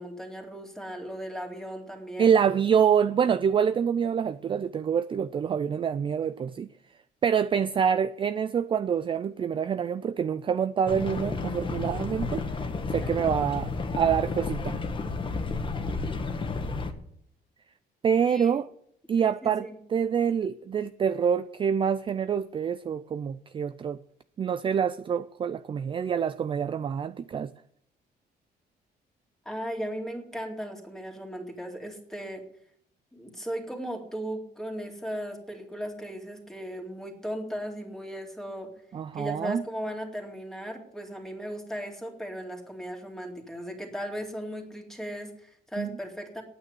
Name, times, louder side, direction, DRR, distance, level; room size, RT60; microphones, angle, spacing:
voice 1, 0.0-2.3 13.0-13.2 18.2-18.5 19.2-19.8 29.4-32.4 33.1-38.7 39.1-46.4, equal, 5° left, 2.6 m, -37 dB
voice 2, 2.2-6.7 7.2-12.4 12.9-14.7 18.0-18.7 19.1-24.0 24.4-27.5 38.9-39.6 45.8-45.9, right 7 dB, 30° right, 0.4 m, -26 dB
sound 1, 10.9-16.9, left 3 dB, 30° left, 1.5 m, -31 dB
9.1 x 8.9 x 9.6 m
cardioid pair, 130°, 17 cm